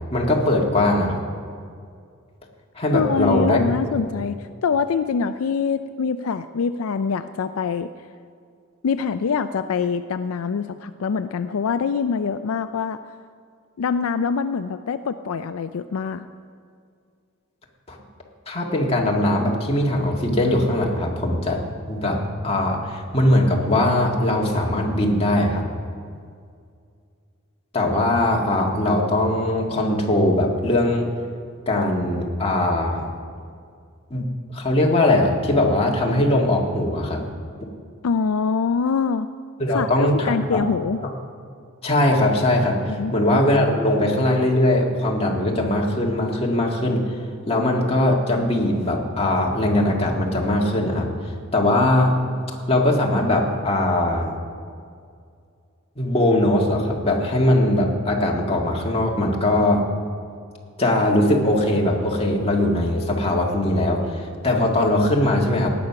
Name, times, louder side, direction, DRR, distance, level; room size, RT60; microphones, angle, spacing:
voice 1, 0.1-1.2 2.8-3.6 17.9-18.0 18.5-25.7 27.7-31.1 31.7-33.1 34.1-34.3 34.5-37.2 39.6-40.6 41.8-47.0 47.5-51.1 51.5-52.1 52.7-54.3 56.0-59.8 60.8-65.7, left 1 dB, 30° left, -1 dB, 1.9 m, -20 dB
voice 2, 2.9-7.9 8.8-13.0 13.8-16.3 38.0-39.3 39.7-41.0 42.9-43.1, left 5 dB, 70° left, 10 dB, 0.4 m, -24 dB
17.5 x 9.6 x 5.9 m, 2.3 s
head